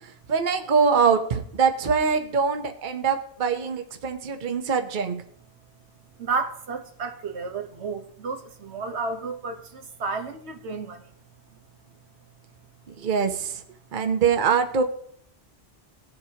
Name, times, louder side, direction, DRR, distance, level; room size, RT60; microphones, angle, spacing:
voice 1, 0.0-5.2 13.0-13.6 13.9-14.8, right 6 dB, 50° right, 1.0 m, -23 dB
voice 2, 6.2-11.1, right 4 dB, 85° right, 1.3 m, -32 dB
19.0 x 7.7 x 2.8 m
omnidirectional pair, 1.1 m